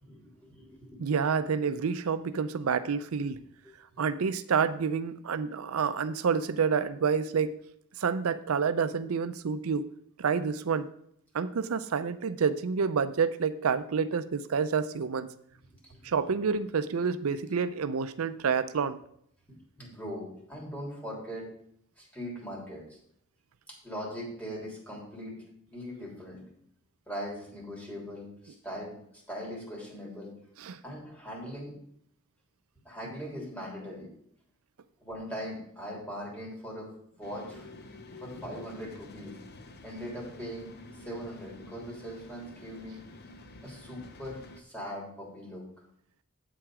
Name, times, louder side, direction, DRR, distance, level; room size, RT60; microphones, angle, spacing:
voice 1, 0.0-1.2 3.6-4.0 15.9-16.4 19.8-21.5 22.0-23.0 23.7-26.4 27.1-30.4 30.8-31.7 32.8-34.1 35.0-37.7 38.2-39.4 39.8-43.0 43.6-45.6, equal, 10° left, -3 dB, 3.3 m, -41 dB
voice 2, 1.0-3.4 4.0-7.5 8.0-9.9 10.2-10.9 11.3-15.3 16.0-19.0 30.6-30.8, right 6 dB, 90° right, 12 dB, 0.5 m, -28 dB
sound 1, 37.2-44.6, left 2 dB, 50° left, 0.8 m, -49 dB
8.4 x 7.7 x 4.9 m, 0.69 s
head